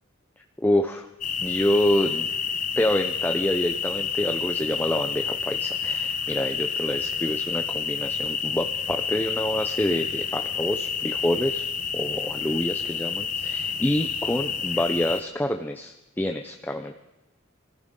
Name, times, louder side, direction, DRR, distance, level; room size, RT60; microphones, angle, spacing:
voice 1, 0.6-1.1 1.4-2.3 2.8-11.7 11.9-16.9, left 1 dB, 10° left, 5 dB, 0.5 m, -27 dB
sound 1, 1.2-15.2, left 6 dB, 35° left, 0.9 m, -29 dB
25.0 x 14.5 x 3.7 m, 1.0 s
head